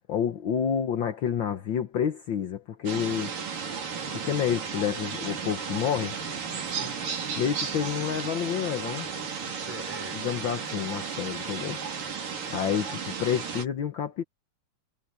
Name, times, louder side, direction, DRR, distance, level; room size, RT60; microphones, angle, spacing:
voice 1, 0.1-3.3 4.1-6.2 7.4-9.1 10.1-11.8 12.5-14.2, left 8 dB, 70° left, 1.1 m, -29 dB
sound 1, 2.9-13.7, right 6 dB, 80° right, 5.4 m, -34 dB
voice 2, 6.6-7.1 9.6-10.5 10.8-10.9 12.1-13.0, equal, 5° right, 4.4 m, -46 dB
omnidirectional pair, 3.8 m